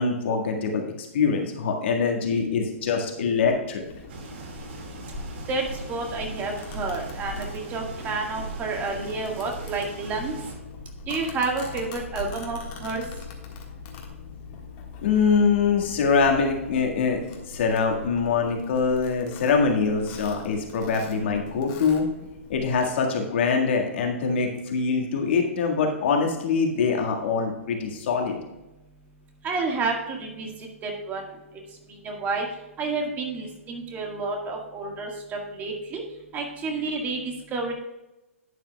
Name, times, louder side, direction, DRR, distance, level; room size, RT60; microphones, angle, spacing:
voice 1, 0.0-3.8 15.0-17.2 17.5-22.1 22.5-28.4, left 5 dB, 55° left, 2 dB, 1.8 m, -24 dB
Domestic sounds home sounds, 3.8-22.9, left 3 dB, 40° left, 1.7 m, -41 dB
sound 1, 4.1-10.6, right 3 dB, 55° right, 2.1 m, -41 dB
voice 2, 5.5-10.4 11.1-13.0 29.4-30.5 30.8-31.3 32.0-32.5 32.8-36.0 36.3-37.7, right 3 dB, 25° right, 1 dB, 1.7 m, -30 dB
11.5 x 8.5 x 2.3 m, 0.98 s
figure-of-eight pair, 120°, 7 cm